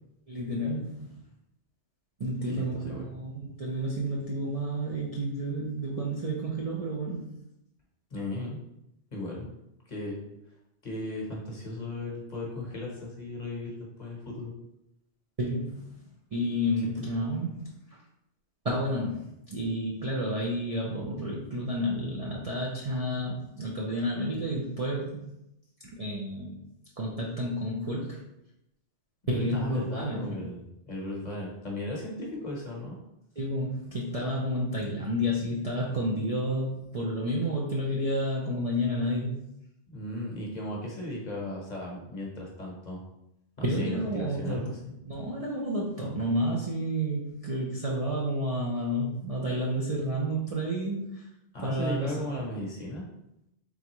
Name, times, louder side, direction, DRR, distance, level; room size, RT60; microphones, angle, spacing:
voice 1, 0.3-1.1 2.2-7.3 15.4-17.6 18.6-25.3 25.8-26.6 27.0-28.2 29.3-30.4 33.4-39.4 43.6-44.7 45.0-51.3 51.6-52.3, equal, 40° right, -5 dB, 0.6 m, -30 dB
voice 2, 2.5-3.1 8.1-8.6 9.1-9.5 9.9-10.2 10.8-14.5 16.9-17.1 29.2-33.0 39.9-43.0 43.6-44.9 51.5-53.0, left 1 dB, 40° left, -3 dB, 0.9 m, -36 dB
3.9 x 3.4 x 3.0 m, 0.85 s
omnidirectional pair, 1.2 m